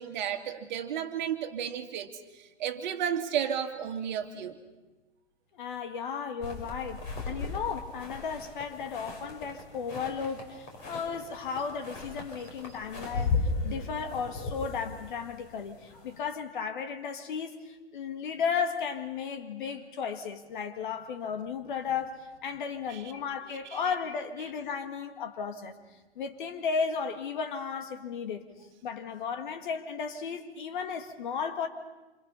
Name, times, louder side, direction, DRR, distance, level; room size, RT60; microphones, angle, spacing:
voice 1, 0.0-4.6 22.9-23.0 23.5-23.9, right 9 dB, 40° right, 2.2 m, -33 dB
voice 2, 5.5-13.3 13.6-25.7 26.1-28.5 28.8-31.7, left 6 dB, 45° left, 1.9 m, -34 dB
sound 1, 6.4-16.2, left 3 dB, 30° left, 5.7 m, -36 dB
27.5 x 26.5 x 5.6 m
figure-of-eight pair, 115°, 34 cm